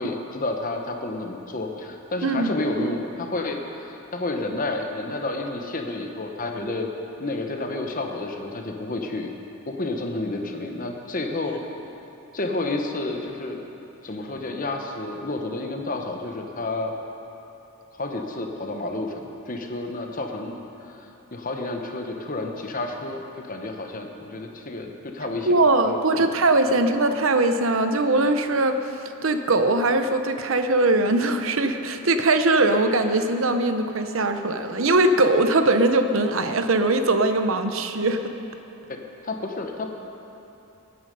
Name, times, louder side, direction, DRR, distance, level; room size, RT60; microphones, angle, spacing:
voice 1, 0.0-6.9 7.2-9.3 9.7-11.6 12.3-13.6 14.0-16.9 17.9-20.5 20.8-25.6 26.1-26.3 26.7-26.8 39.2-39.9, left 2 dB, 35° left, 3 dB, 1.1 m, -30 dB
voice 2, 25.5-28.8 29.2-38.3, right 2 dB, 65° right, 7 dB, 0.9 m, -21 dB
19.0 x 9.7 x 5.4 m, 3.0 s
head